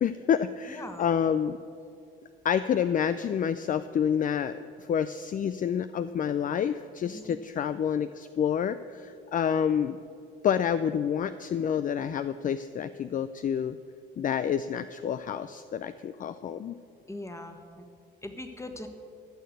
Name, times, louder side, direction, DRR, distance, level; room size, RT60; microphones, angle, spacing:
voice 1, 0.0-1.6 2.4-10.0 10.4-13.8 14.2-16.8, left 8 dB, 40° left, 12 dB, 0.4 m, -28 dB
voice 2, 0.7-1.0 7.1-7.3 17.1-17.8 18.2-18.9, left 1 dB, 15° left, 6 dB, 1.4 m, -40 dB
13.5 x 6.6 x 8.0 m, 2.6 s
cardioid pair, 90°, 20 cm